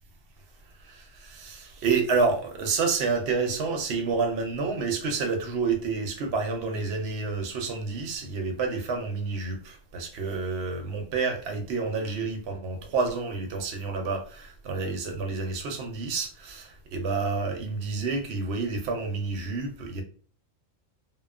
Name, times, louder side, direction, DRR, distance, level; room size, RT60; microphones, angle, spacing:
voice 1, 0.8-20.0, right 4 dB, 65° right, 0.8 m, -29 dB
2.9 x 2.0 x 2.3 m
omnidirectional pair, 1.3 m